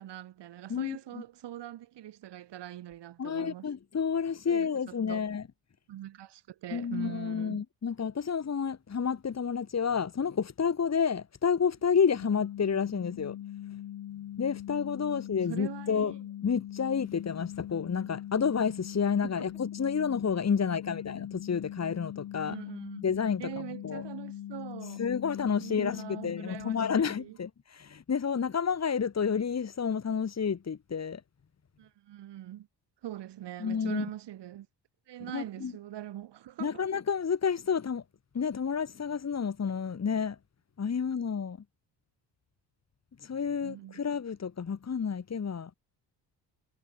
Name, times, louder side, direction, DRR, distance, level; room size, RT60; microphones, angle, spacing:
voice 1, 0.0-3.7 4.5-5.3 5.9-7.6 15.1-15.2 15.5-16.2 19.2-19.5 20.6-20.8 22.4-23.0 23.4-25.1 25.6-27.4 31.8-32.7 33.0-34.7 35.1-36.8 43.6-44.0, right 12 dB, 70° right, 4.3 m, -43 dB
voice 2, 0.7-1.2 3.2-5.4 6.7-13.4 14.4-16.1 16.4-22.5 23.0-23.5 23.8-24.0 25.0-31.2 33.6-34.1 35.3-35.7 36.6-38.0 38.3-40.4 40.8-41.6 43.2-45.7, left 6 dB, 35° left, 3.1 m, -30 dB
sound 1, 12.2-27.0, left 12 dB, 65° left, 4.7 m, -41 dB
cardioid pair, 85°, 43 cm